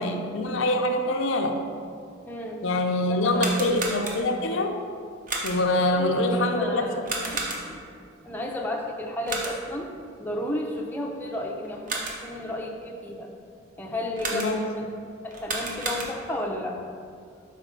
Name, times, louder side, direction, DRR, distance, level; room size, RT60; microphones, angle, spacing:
voice 1, 0.0-1.6 2.6-4.8 5.4-7.7 14.3-14.6, left 1 dB, 90° left, 4 dB, 0.6 m, -25 dB
voice 2, 2.2-2.6 3.1-3.7 5.9-7.1 7.7-7.8 8.2-9.9 10.2-13.3 13.8-14.9 15.2-16.8, left 1 dB, 10° left, -1 dB, 0.5 m, -32 dB
sound 1, 3.2-4.5 5.3-5.8 7.0-7.9 9.3-9.8 11.6-12.4 14.2-14.8 15.3-16.4, right 3 dB, 45° right, 0.8 m, -33 dB
5.1 x 4.0 x 5.3 m, 2.3 s
head